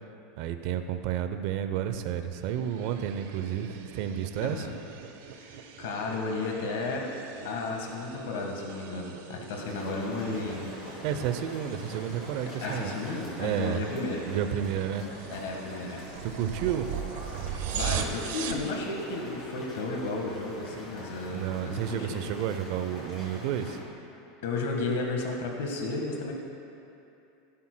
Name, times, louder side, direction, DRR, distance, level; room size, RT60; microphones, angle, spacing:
voice 1, 0.4-4.7 11.0-12.9 13.4-13.8 14.2-15.1 16.2-16.9 21.3-23.8, right 9 dB, 50° right, 8 dB, 0.6 m, -31 dB
sound 1, 2.4-18.7, right 8 dB, 75° right, 0.9 m, -40 dB
voice 2, 4.4-4.7 5.4-7.0 7.4-10.7 12.6-14.2 15.3-16.0 17.7-22.2 24.4-26.3, left 3 dB, 80° left, 0 dB, 1.5 m, -33 dB
sound 2, 9.6-23.8, left 1 dB, 20° left, 2.7 m, -44 dB
16.0 x 11.5 x 2.2 m, 2.8 s
supercardioid pair, 165°, 0 cm